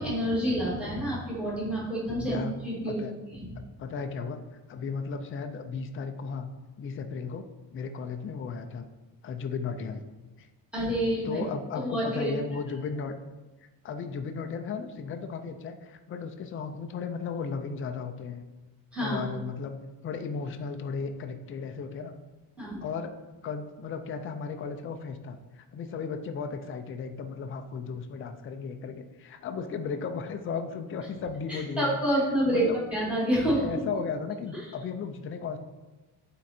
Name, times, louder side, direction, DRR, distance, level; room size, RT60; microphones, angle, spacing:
voice 1, 0.0-3.0 3.3-3.5 10.7-11.4 11.8-12.3 18.9-19.2 22.6-22.8 31.5-32.6 32.9-33.8, equal, 5° right, -7 dB, 2.2 m, -28 dB
voice 2, 2.2-2.5 2.9-3.1 3.8-4.4 4.7-6.5 6.8-8.9 9.2-10.0 10.4-10.5 11.2-13.1 13.8-18.4 19.0-19.8 20.0-22.2 22.8-23.1 23.4-32.0 32.5-32.8 33.6-35.6, left 5 dB, 30° left, 6 dB, 0.4 m, -35 dB
9.2 x 3.8 x 4.2 m, 1.2 s
cardioid pair, 170°, 45 cm